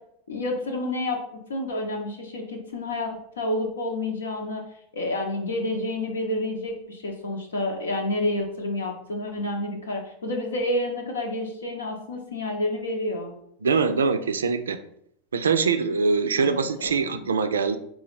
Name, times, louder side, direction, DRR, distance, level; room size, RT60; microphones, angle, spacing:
voice 1, 0.3-1.2 1.5-4.6 4.9-13.3 16.4-16.7 16.9-17.2, left 1 dB, 80° left, 3 dB, 0.8 m, -29 dB
voice 2, 13.6-14.8 15.3-17.8, right 5 dB, 80° right, 10 dB, 0.3 m, -23 dB
4.2 x 2.4 x 4.0 m, 0.73 s
hypercardioid pair, 90°, 0 cm